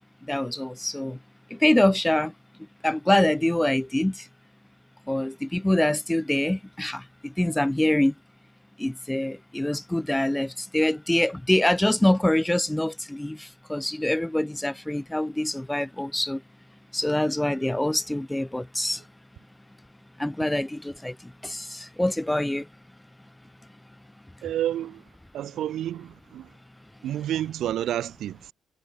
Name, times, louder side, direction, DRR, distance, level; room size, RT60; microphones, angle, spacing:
voice 1, 0.3-1.2 1.5-2.3 2.8-4.3 5.1-8.1 8.8-16.4 16.9-19.0 20.2-21.1 21.4-22.7, left 1 dB, 5° left, 0.6 m, -25 dB
voice 2, 24.4-25.0 25.3-26.5 27.0-28.5, right 12 dB, 75° right, 3.7 m, -30 dB
cardioid pair, 145°, 0 cm